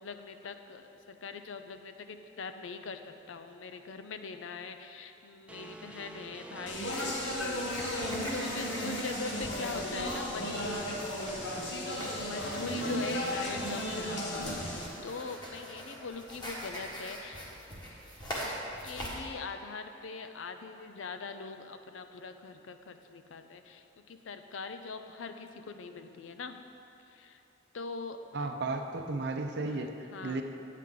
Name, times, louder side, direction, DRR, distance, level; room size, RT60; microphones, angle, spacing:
voice 1, 0.0-10.9 11.9-17.4 18.4-18.6 18.8-26.6 27.1-27.4 27.7-28.5 29.7-30.4, left 4 dB, 85° left, 8 dB, 0.5 m, -42 dB
sound 1, 5.5-7.0 7.9-11.7 12.3-13.8, right 1 dB, 5° right, 0.3 m, -47 dB
Speech, 6.7-14.9, equal, 65° left, 1.2 m, -35 dB
sound 2, 6.8-19.1, equal, 20° left, 1.4 m, -43 dB
voice 2, 28.3-29.9 30.2-30.4, right 3 dB, 55° right, 4 dB, 0.6 m, -33 dB
9.3 x 8.2 x 3.7 m, 2.9 s
head